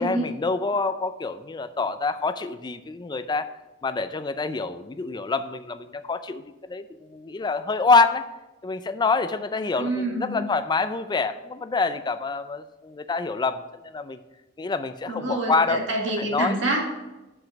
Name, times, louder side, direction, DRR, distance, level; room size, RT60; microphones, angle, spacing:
voice 1, 0.0-3.5 3.8-8.3 8.6-14.2 14.6-15.8 16.2-16.6, left 4 dB, 25° left, 11 dB, 0.4 m, -26 dB
voice 2, 9.8-10.4 15.1-16.8, right 2 dB, 75° right, -1 dB, 1.8 m, -27 dB
6.1 x 5.0 x 5.8 m, 1.0 s
head